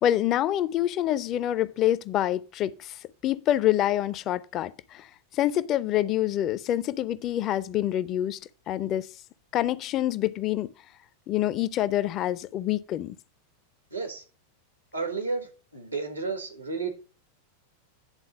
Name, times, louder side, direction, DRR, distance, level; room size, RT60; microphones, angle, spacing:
voice 1, 0.0-3.0 3.2-5.1 5.3-8.4 8.7-9.1 9.5-10.7 11.3-13.2, left 12 dB, 35° left, 0.5 m, -26 dB
voice 2, 13.9-14.2 14.9-16.9, right 4 dB, 85° right, 1.8 m, -32 dB
9.8 x 3.8 x 6.1 m
figure-of-eight pair, 90°, 0 cm